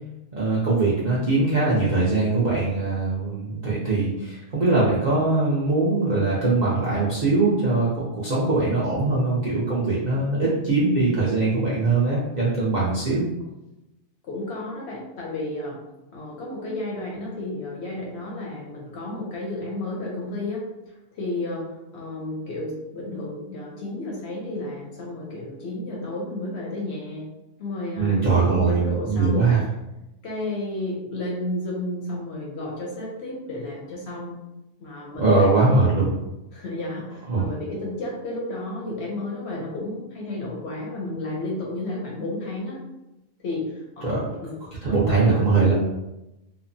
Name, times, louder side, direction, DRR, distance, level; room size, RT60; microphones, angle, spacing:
voice 1, 0.4-13.3 28.0-29.6 35.2-36.1 37.3-37.5 44.0-44.2 44.8-45.7, right 3 dB, 55° right, -8 dB, 0.4 m, -21 dB
voice 2, 14.2-15.8 16.1-20.7 21.1-27.3 27.6-29.5 30.2-34.4 34.8-35.9 36.5-42.8 43.4-44.6 44.8-45.5, left 2 dB, 65° left, -2 dB, 0.7 m, -32 dB
2.8 x 2.0 x 2.5 m, 0.95 s
omnidirectional pair, 1.4 m